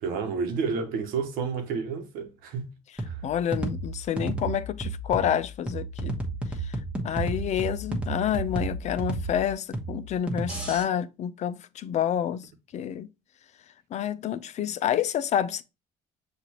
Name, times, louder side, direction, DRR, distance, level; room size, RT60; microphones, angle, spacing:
voice 1, 0.0-2.7 3.1-3.2, right 5 dB, 85° right, 1.0 m, -30 dB
sound 1, 3.0-10.8, right 2 dB, 5° right, 1.1 m, -32 dB
voice 2, 3.2-6.1 6.6-6.8 7.0-13.1 13.9-15.6, left 10 dB, 55° left, 0.4 m, -28 dB
6.5 x 2.5 x 2.9 m
cardioid pair, 95°, 14 cm